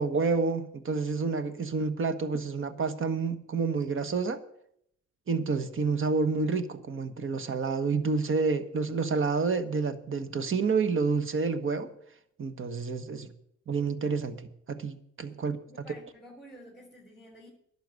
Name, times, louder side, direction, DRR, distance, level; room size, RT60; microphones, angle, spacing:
voice 1, 0.0-4.4 5.3-11.9 12.4-13.3 13.7-15.6, right 4 dB, 45° right, 1.3 m, -29 dB
voice 2, 15.3-17.5, equal, ahead, 3.4 m, -51 dB
11.5 x 6.8 x 9.4 m
cardioid pair, 90°, 30 cm